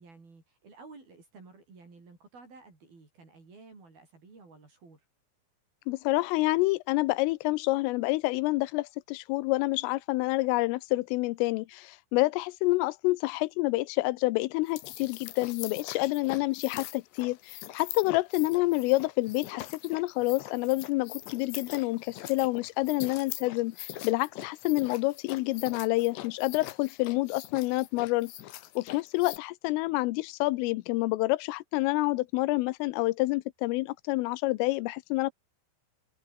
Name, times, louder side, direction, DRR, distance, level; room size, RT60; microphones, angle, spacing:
voice 1, 0.0-5.1, right 3 dB, 45° right, 8.8 m, -53 dB
voice 2, 5.9-28.3 28.8-35.3, left 21 dB, 85° left, 3.3 m, -28 dB
sound 1, 14.6-29.4, left 14 dB, 70° left, 3.3 m, -43 dB
omnidirectional pair, 5.8 m